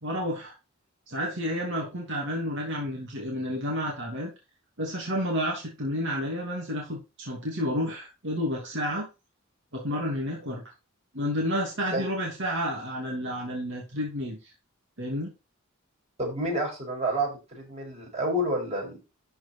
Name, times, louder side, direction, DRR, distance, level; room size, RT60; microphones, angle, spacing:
voice 1, 0.0-0.5 1.1-4.3 4.8-9.1 9.7-10.6 11.1-14.5 15.0-15.3, equal, 60° right, -1 dB, 2.8 m, -30 dB
voice 2, 16.2-19.0, right 1 dB, 30° right, -1 dB, 6.6 m, -29 dB
12.5 x 4.8 x 4.5 m, 0.28 s
head